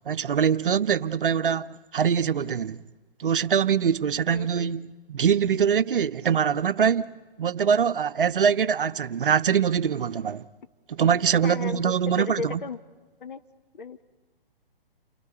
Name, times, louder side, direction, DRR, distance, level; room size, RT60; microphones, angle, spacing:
voice 1, 0.1-2.8 3.2-7.1 7.4-10.4 10.9-12.6, right 7 dB, 65° right, 0.8 m, -23 dB
voice 2, 4.3-4.7 11.4-12.8 13.2-13.4 13.7-14.0, left 5 dB, 60° left, 1.3 m, -35 dB
30.0 x 27.0 x 4.4 m
figure-of-eight pair, 130°, 29 cm